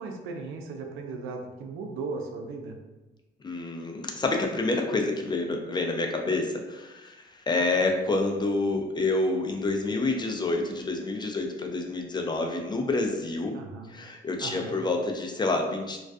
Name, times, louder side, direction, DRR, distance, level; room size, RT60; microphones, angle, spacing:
voice 1, 0.0-2.8 13.5-13.9 14.4-14.8, right 4 dB, 85° right, 3 dB, 0.4 m, -37 dB
voice 2, 3.4-13.6 13.9-16.0, left 2 dB, 20° left, 3 dB, 0.3 m, -28 dB
2.3 x 2.2 x 2.5 m, 1.1 s
cardioid pair, 90°, 20 cm